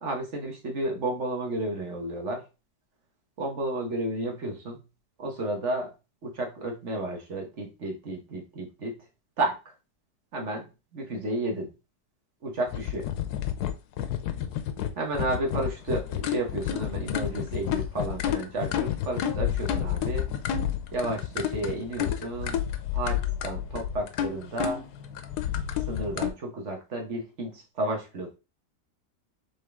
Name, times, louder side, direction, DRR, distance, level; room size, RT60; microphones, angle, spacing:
voice 1, 0.0-2.4 3.4-4.8 5.2-5.9 6.2-9.0 9.4-9.7 10.3-10.7 10.9-11.7 12.4-13.1 15.0-20.3 20.9-22.6 22.9-24.9 25.9-28.3, right 2 dB, 45° right, 2 dB, 1.4 m, -32 dB
sound 1, 12.7-26.3, left 10 dB, 75° left, 1.2 m, -30 dB
4.2 x 3.6 x 3.5 m, 0.29 s
omnidirectional pair, 1.8 m